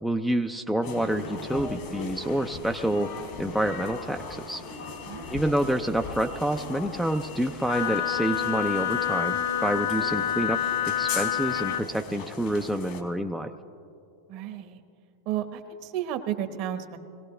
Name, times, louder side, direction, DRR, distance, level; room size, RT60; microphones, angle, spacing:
voice 1, 0.0-3.1 3.4-4.6 5.3-9.4 9.6-10.6 10.9-13.5, right 1 dB, ahead, 4 dB, 0.4 m, -28 dB
sound 1, 0.8-13.0, left 4 dB, 55° left, 1.9 m, -39 dB
voice 2, 5.0-5.6 14.3-14.8 15.2-17.0, right 10 dB, 50° right, 8 dB, 1.0 m, -33 dB
Wind instrument woodwind instrument, 7.7-11.9, left 11 dB, 75° left, 0.6 m, -27 dB
21.0 x 16.5 x 3.3 m, 2.6 s
supercardioid pair, 125°, 0 cm